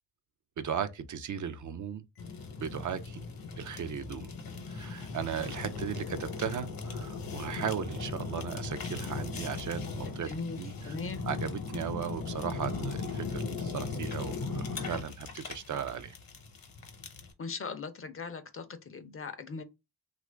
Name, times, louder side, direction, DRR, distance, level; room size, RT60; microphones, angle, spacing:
voice 1, 0.6-2.0 2.6-3.2 3.6-4.3 4.7-11.0 11.3-16.2, right 8 dB, 50° right, 0.4 m, -37 dB
Fire, 2.2-17.3, left 4 dB, 60° left, 0.9 m, -38 dB
voice 2, 10.3-11.2 17.4-19.6, left 4 dB, 35° left, 0.5 m, -39 dB
2.9 x 2.5 x 3.2 m
cardioid pair, 70°, 40 cm